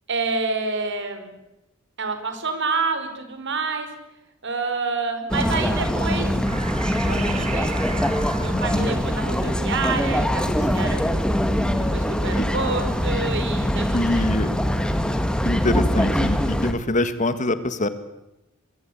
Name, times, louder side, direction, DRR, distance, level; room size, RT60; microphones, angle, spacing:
voice 1, 0.1-1.3 2.0-3.9 4.4-6.3 6.9-8.1 8.3-11.2 11.8-13.8, right 4 dB, 60° right, 8 dB, 4.9 m, -28 dB
sound 1, 5.3-16.7, equal, 5° left, 2.2 m, -23 dB
sound 2, 6.4-11.3, right 5 dB, 30° right, 2.3 m, -37 dB
voice 2, 8.5-9.0 12.4-12.5 13.9-14.5 15.4-17.9, left 2 dB, 35° left, 12 dB, 1.7 m, -24 dB
24.0 x 23.5 x 8.6 m, 0.90 s
head